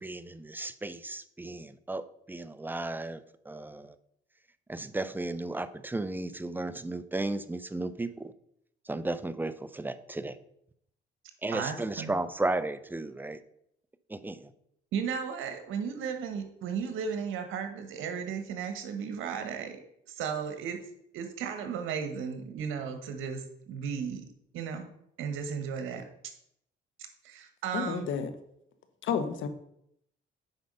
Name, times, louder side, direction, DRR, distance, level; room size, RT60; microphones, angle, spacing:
voice 1, 0.0-4.0 4.7-8.3 8.9-10.4 11.4-13.4 14.1-14.5, right 2 dB, 10° right, 13 dB, 0.6 m, -34 dB
voice 2, 11.5-12.1 14.9-19.8 20.1-20.8 21.1-24.3 24.5-24.9 25.2-26.1 27.2-28.1, right 6 dB, 90° right, 7 dB, 1.3 m, -35 dB
voice 3, 27.7-28.3 29.0-29.5, left 7 dB, 75° left, 10 dB, 1.1 m, -30 dB
8.1 x 5.3 x 5.5 m, 0.75 s
cardioid pair, 90°, 20 cm